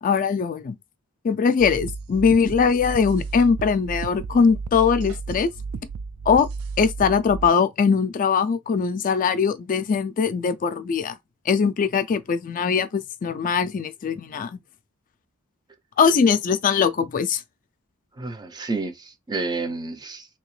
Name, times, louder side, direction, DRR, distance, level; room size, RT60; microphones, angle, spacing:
voice 1, 0.0-0.7 1.2-5.5 6.3-6.5 6.8-11.1 11.5-14.6 16.0-17.4, left 6 dB, 40° left, 0.3 m, -21 dB
sound 1, 1.6-7.5, right 4 dB, 75° right, 0.4 m, -33 dB
voice 2, 18.2-20.3, right 3 dB, 20° right, 0.5 m, -30 dB
3.5 x 2.8 x 3.1 m
head